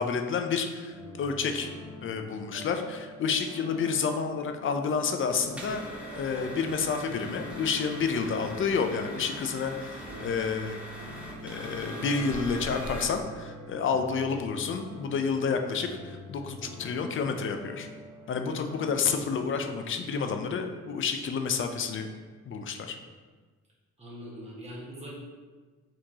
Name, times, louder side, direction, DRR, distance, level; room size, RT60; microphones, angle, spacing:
voice 1, 0.0-1.7 2.0-10.8 11.4-17.9 18.3-22.1 22.4-23.0, left 5 dB, 45° left, 6 dB, 0.4 m, -30 dB
sound 1, 0.9-19.2, right 1 dB, 60° right, 1.3 m, -45 dB
sound 2, 5.4-13.1, equal, 5° right, 0.7 m, -42 dB
voice 2, 24.0-25.1, equal, 20° right, -6 dB, 1.3 m, -43 dB
4.4 x 2.9 x 2.8 m, 1.4 s
cardioid pair, 90°, 30 cm